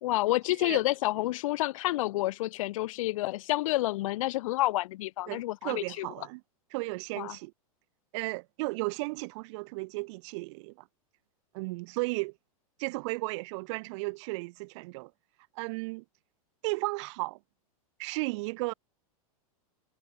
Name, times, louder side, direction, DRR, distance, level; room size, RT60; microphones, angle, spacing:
voice 1, 0.0-6.1 7.2-7.4, left 17 dB, 65° left, 1.0 m, -29 dB
voice 2, 5.3-6.4 6.7-7.5 8.1-10.7 11.5-12.3 12.8-15.1 15.6-16.0 16.6-17.4 18.0-18.7, right 26 dB, 55° right, 1.7 m, -34 dB
hypercardioid pair, 135°, 18 cm